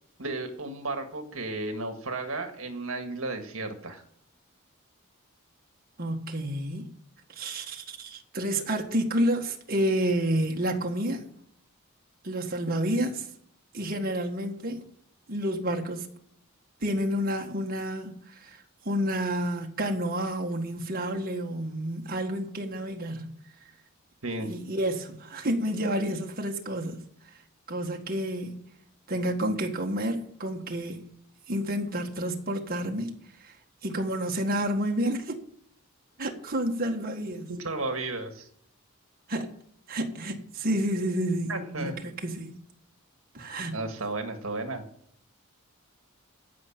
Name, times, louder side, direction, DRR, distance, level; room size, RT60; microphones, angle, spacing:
voice 1, 0.2-4.0 24.2-24.6 37.5-38.5 41.5-42.0 43.7-44.8, right 2 dB, 70° right, 1.8 m, -33 dB
voice 2, 6.0-6.9 7.3-11.3 12.2-13.3 13.7-14.8 15.3-16.1 16.8-23.4 24.4-27.0 27.7-28.6 29.1-31.0 31.5-33.1 33.4-33.5 33.8-35.4 36.2-37.5 39.3-39.6 39.9-41.9 42.2-42.6 43.3-43.7, right 1 dB, 45° right, 1.7 m, -30 dB
14.5 x 5.7 x 8.6 m
head